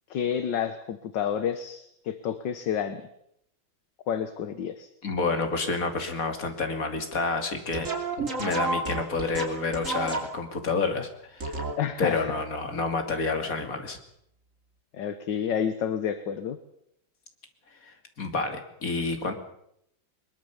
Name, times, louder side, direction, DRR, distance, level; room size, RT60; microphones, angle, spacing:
voice 1, 0.1-3.1 4.1-4.9 11.8-12.3 14.9-16.6, left 8 dB, 65° left, 11 dB, 1.7 m, -29 dB
voice 2, 5.0-7.9 8.2-11.6 12.0-14.0 17.8-19.3, left 3 dB, 45° left, 6 dB, 3.1 m, -29 dB
sound 1, 7.7-10.6 11.4-12.0, right 3 dB, 40° right, 3.6 m, -31 dB
22.0 x 21.5 x 7.1 m, 0.75 s
omnidirectional pair, 2.2 m